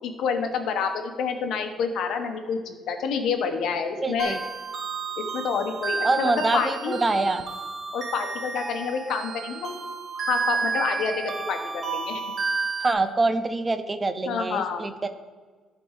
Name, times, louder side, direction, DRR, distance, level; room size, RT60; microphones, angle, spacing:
voice 1, 0.0-4.4 5.2-7.0 7.9-9.8 10.3-11.6 11.9-12.2 14.2-14.9, left 6 dB, 65° left, 6 dB, 1.1 m, -28 dB
voice 2, 4.0-4.4 6.0-7.4 12.8-15.1, right 3 dB, 20° right, 9 dB, 0.6 m, -25 dB
sound 1, 4.2-12.9, right 4 dB, 35° right, 1.6 m, -31 dB
12.5 x 4.4 x 4.9 m, 1.5 s
cardioid pair, 150°, 0 cm